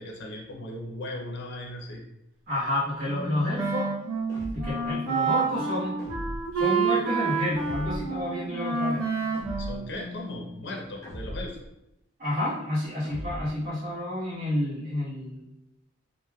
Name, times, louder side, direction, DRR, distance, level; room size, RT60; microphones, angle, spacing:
voice 1, 0.0-2.0 9.6-11.6, left 1 dB, 55° left, 0 dB, 0.6 m, -37 dB
voice 2, 2.5-3.9 4.5-6.0 6.5-9.0 12.2-15.5, left 1 dB, 45° right, -9 dB, 1.4 m, -29 dB
Wind instrument woodwind instrument, 3.0-10.5, right 4 dB, 65° right, 0.8 m, -29 dB
sound 1, 4.3-4.9 6.0-6.7 7.6-8.2 9.3-10.0 11.0-11.7 13.0-13.7, equal, 15° left, 1.0 m, -38 dB
3.1 x 2.8 x 2.3 m, 0.89 s
head